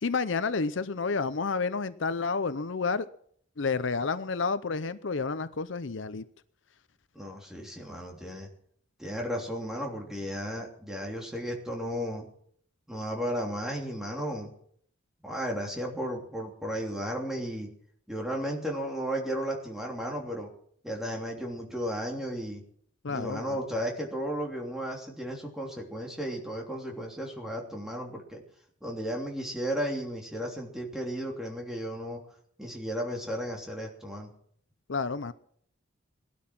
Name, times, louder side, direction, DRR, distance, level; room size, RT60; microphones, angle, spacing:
voice 1, 0.0-3.1 3.6-6.2 23.0-23.6 34.9-35.3, left 4 dB, 70° left, 0.7 m, -30 dB
voice 2, 7.1-8.5 9.0-12.3 12.9-14.5 15.2-17.7 18.1-20.5 20.8-22.6 23.1-28.4 28.8-32.2 32.6-34.3, equal, ahead, 3.1 m, -34 dB
18.5 x 12.5 x 6.0 m
head